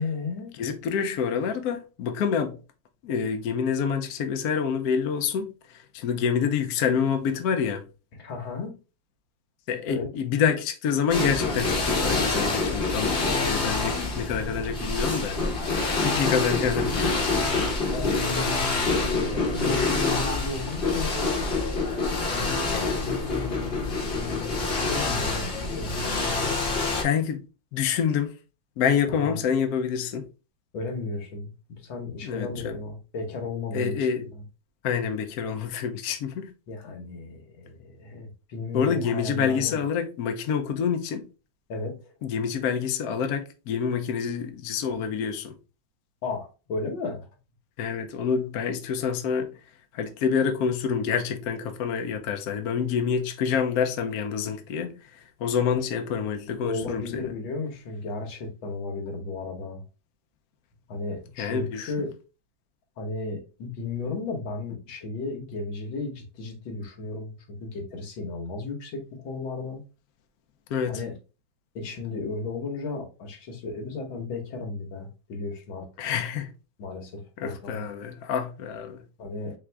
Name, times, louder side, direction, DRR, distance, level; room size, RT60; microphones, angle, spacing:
voice 1, 0.0-0.5 8.2-8.8 9.9-10.1 17.9-21.1 22.3-26.8 29.1-29.5 30.7-34.4 36.7-39.8 41.7-42.0 46.2-47.3 56.6-59.8 60.9-62.2 63.0-69.8 70.9-71.1 71.8-75.9 76.8-77.9 79.2-79.5, left 3 dB, 80° left, 1.8 m, -34 dB
voice 2, 0.6-2.6 3.0-7.8 9.7-15.6 16.0-17.2 22.7-23.0 27.0-27.4 27.7-28.3 28.8-30.2 32.2-32.7 33.7-34.3 34.8-36.5 38.7-41.3 42.2-45.5 47.8-49.5 49.9-57.3 61.4-62.1 70.7-71.0 76.0-76.5 77.4-79.0, left 7 dB, 65° left, 1.0 m, -27 dB
sound 1, 11.1-27.0, left 3 dB, 40° left, 1.0 m, -26 dB
3.7 x 3.5 x 3.3 m
omnidirectional pair, 2.1 m